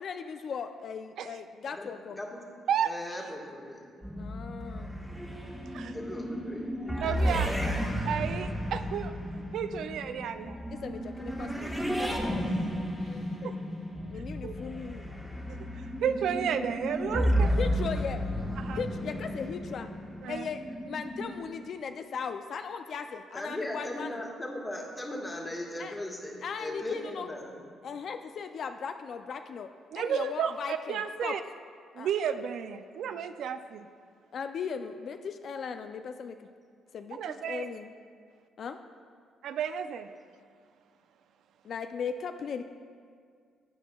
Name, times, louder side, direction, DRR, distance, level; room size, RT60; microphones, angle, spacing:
voice 1, 0.0-2.2 4.2-4.9 7.8-8.0 10.7-11.9 13.0-13.5 14.1-15.0 17.6-18.2 18.7-19.9 20.3-20.6 20.9-24.2 25.8-25.9 26.4-27.3 27.8-29.7 29.9-31.3 32.0-32.1 34.3-36.5 36.9-37.2 37.5-37.9 38.6-38.8 41.6-42.6, left 6 dB, 60° left, 7 dB, 0.3 m, -37 dB
voice 2, 1.7-2.4 2.8-4.0 5.9-7.0 23.3-27.6, left 1 dB, 15° left, -1 dB, 1.5 m, -38 dB
sound 1, 4.0-21.5, equal, ahead, 1.2 m, -33 dB
voice 3, 7.0-7.5 8.1-10.6 13.4-13.5 14.4-14.6 15.5-17.5 18.6-18.8 20.2-20.5 29.9-31.4 31.9-33.9 37.2-37.7 39.4-40.1, right 8 dB, 75° right, 9 dB, 0.3 m, -32 dB
11.5 x 8.2 x 2.3 m, 2.1 s
cardioid pair, 90°, 0 cm